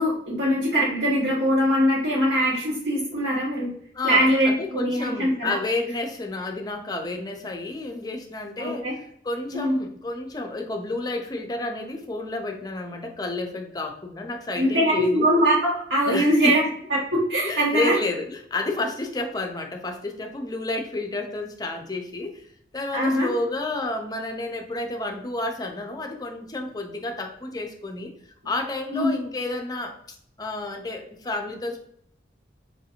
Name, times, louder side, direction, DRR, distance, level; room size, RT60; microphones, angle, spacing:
voice 1, 0.0-3.7 4.0-5.6 8.6-8.9 9.5-9.7 14.5-16.6 16.9-17.0 17.3-18.0 22.9-23.3 28.9-29.1, equal, 75° right, -6 dB, 1.1 m, -22 dB
voice 2, 3.9-8.9 9.2-15.3 16.1-16.6 17.4-22.5 22.7-28.1 28.4-31.8, left 2 dB, 20° left, 4 dB, 0.5 m, -30 dB
4.8 x 2.6 x 2.8 m, 0.68 s
head